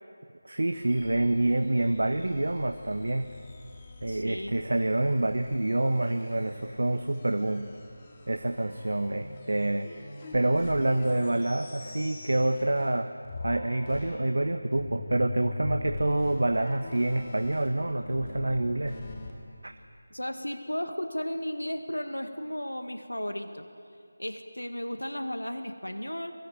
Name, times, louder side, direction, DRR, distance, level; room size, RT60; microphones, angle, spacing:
voice 1, 0.4-3.3 4.0-7.7 8.3-9.9 10.3-13.1 13.4-19.0 19.6-19.7, right 2 dB, 65° right, 8 dB, 1.2 m, -27 dB
sound 1, 0.7-13.0 13.2-19.3, left 2 dB, 25° left, 2.9 m, -43 dB
voice 2, 4.1-4.5 20.1-23.7 24.2-26.3, equal, 90° left, 7 dB, 1.9 m, -34 dB
23.5 x 22.0 x 9.3 m, 2.4 s
figure-of-eight pair, 165°, 0 cm